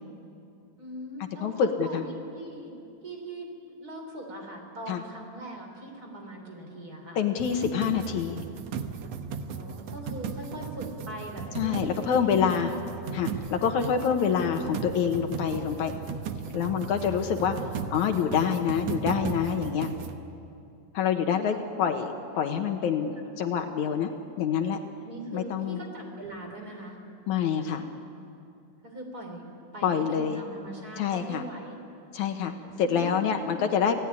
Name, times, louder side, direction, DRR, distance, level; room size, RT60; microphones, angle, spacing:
voice 1, 0.8-2.8 3.0-7.2 9.4-12.8 21.5-21.6 23.2-23.3 25.0-27.0 28.8-29.4 29.7-31.8 32.5-33.6, right 1 dB, 30° right, 1 dB, 4.2 m, -41 dB
voice 2, 1.4-2.1 4.9-5.0 7.2-8.4 11.6-12.7 13.1-15.9 16.5-17.6 17.9-19.9 20.9-22.1 22.4-24.1 24.4-24.8 25.3-25.8 27.3-27.9 29.8-30.4 31.0-31.4 32.1-34.0, left 7 dB, 70° left, 5 dB, 2.4 m, -26 dB
sound 1, 7.4-20.2, right 6 dB, 65° right, 1.9 m, -36 dB
28.0 x 17.5 x 9.7 m, 2.6 s
omnidirectional pair, 3.7 m